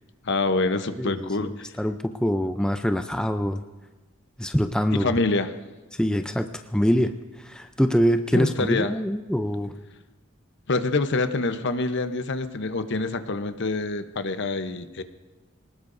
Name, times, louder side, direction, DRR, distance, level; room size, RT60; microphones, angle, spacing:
voice 1, 0.2-1.7 4.9-5.5 8.3-8.9 10.7-15.0, left 3 dB, 60° left, 9 dB, 0.9 m, -26 dB
voice 2, 1.0-3.6 4.4-5.1 6.0-9.7, equal, 5° left, 6 dB, 0.5 m, -24 dB
25.5 x 19.0 x 2.6 m, 1.2 s
head